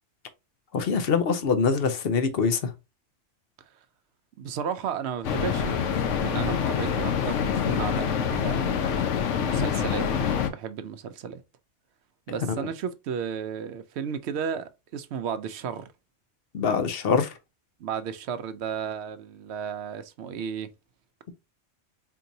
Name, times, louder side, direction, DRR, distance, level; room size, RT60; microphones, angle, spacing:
voice 1, 0.7-2.7 12.5-12.7 16.5-17.3, left 5 dB, 60° left, 0.9 m, -24 dB
voice 2, 4.4-8.8 9.4-11.4 12.3-15.9 17.8-20.7, right 7 dB, 70° right, 0.8 m, -34 dB
sound 1, 5.2-10.5, left 7 dB, 85° left, 1.0 m, -26 dB
4.5 x 2.8 x 2.6 m
omnidirectional pair, 1.2 m